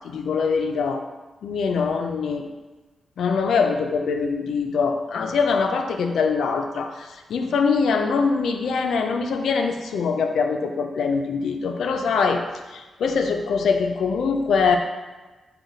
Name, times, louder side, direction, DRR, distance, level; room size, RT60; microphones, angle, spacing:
voice 1, 0.0-1.0 1.4-2.5 3.2-12.4 12.7-14.8, left 5 dB, 75° left, 5 dB, 0.3 m, -23 dB
3.9 x 2.2 x 3.9 m, 1.2 s
wide cardioid pair, 175°, 0 cm